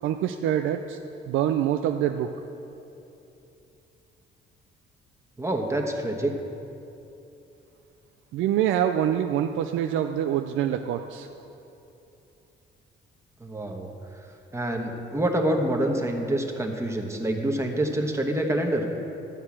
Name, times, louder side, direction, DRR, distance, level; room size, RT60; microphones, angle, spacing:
voice 1, 0.0-1.0 1.3-2.3 8.3-11.3, right 10 dB, 85° right, 7 dB, 0.4 m, -25 dB
voice 2, 5.4-6.3 13.4-13.9 14.5-18.8, right 1 dB, 15° right, 2 dB, 1.3 m, -26 dB
12.5 x 4.6 x 8.6 m, 2.8 s
cardioid pair, 90°, 20 cm